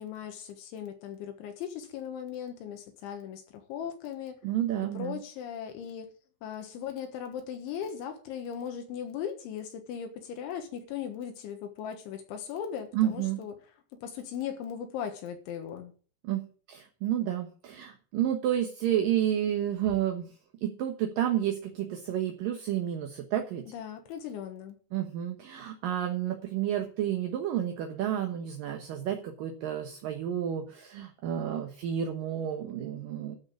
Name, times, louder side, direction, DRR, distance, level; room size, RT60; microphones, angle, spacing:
voice 1, 0.0-4.4 4.9-6.1 6.4-13.5 13.9-15.9 23.7-24.8, left 8 dB, 75° left, 3.7 m, -38 dB
voice 2, 4.4-5.2 12.9-13.4 16.2-20.3 20.6-23.7 24.9-33.4, right 10 dB, 65° right, 2.2 m, -30 dB
12.5 x 6.5 x 8.6 m
omnidirectional pair, 5.5 m